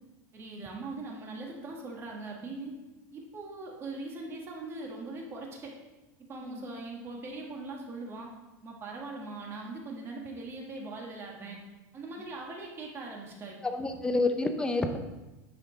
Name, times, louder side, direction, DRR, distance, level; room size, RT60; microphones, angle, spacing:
voice 1, 0.3-2.7 3.1-5.7 6.2-8.3 8.6-11.6 11.9-13.9, right 3 dB, 25° right, 0 dB, 1.5 m, -41 dB
voice 2, 13.6-15.0, left 2 dB, 10° left, 6 dB, 0.6 m, -29 dB
9.9 x 6.1 x 3.9 m, 1.1 s
supercardioid pair, 155°, 10 cm